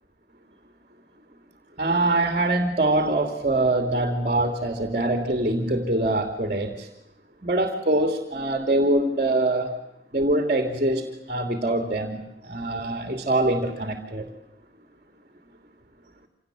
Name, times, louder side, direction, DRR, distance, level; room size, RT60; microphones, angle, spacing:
voice 1, 1.8-6.9 7.4-9.7 10.1-14.2, right 2 dB, 40° right, 6 dB, 2.9 m, -24 dB
27.0 x 18.5 x 9.4 m, 0.88 s
head